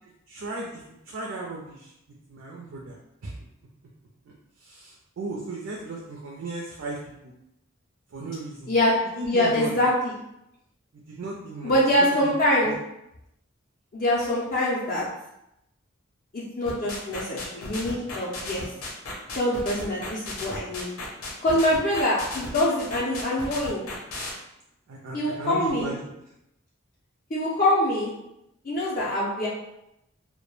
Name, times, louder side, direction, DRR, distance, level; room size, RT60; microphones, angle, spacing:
voice 1, 0.3-0.8 1.1-1.9 2.3-3.0 3.2-3.3 4.6-7.0 7.2-7.3 8.1-8.7 9.2-9.8 11.1-11.7 12.6-12.7 24.9-26.0, right 2 dB, 70° right, -2 dB, 0.4 m, -35 dB
voice 2, 9.2-10.2 11.6-12.8 13.9-15.0 16.3-18.6 19.4-20.9 21.4-23.8 25.1-25.9 27.3-28.1 28.6-29.5, left 1 dB, 40° left, -6 dB, 0.4 m, -24 dB
sound 1, 16.7-24.3, left 2 dB, 90° left, 0.7 m, -35 dB
2.2 x 2.1 x 3.1 m, 0.85 s
head